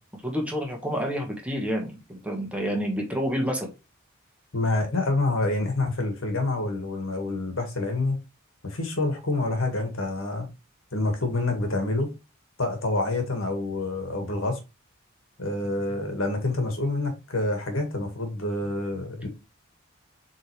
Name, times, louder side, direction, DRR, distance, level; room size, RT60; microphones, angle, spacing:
voice 1, 0.2-3.7, equal, 5° right, 1.6 m, -29 dB
voice 2, 4.5-8.2 8.6-10.5 10.9-12.1 12.6-14.6 15.4-19.3, left 2 dB, 75° left, 1.9 m, -27 dB
7.6 x 3.8 x 3.3 m
head